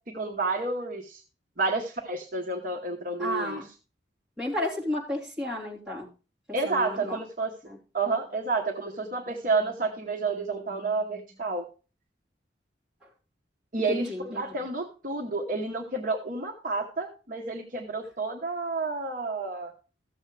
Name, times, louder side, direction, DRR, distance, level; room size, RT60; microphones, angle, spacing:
voice 1, 0.1-1.2 1.6-3.6 6.5-7.5 7.9-11.7 13.7-19.7, right 3 dB, 45° right, 2 dB, 1.1 m, -30 dB
voice 2, 3.2-3.7 4.4-6.1 6.6-7.2 7.6-7.8 13.9-14.4, left 1 dB, 5° right, -7 dB, 3.4 m, -32 dB
14.0 x 7.2 x 3.2 m, 0.33 s
head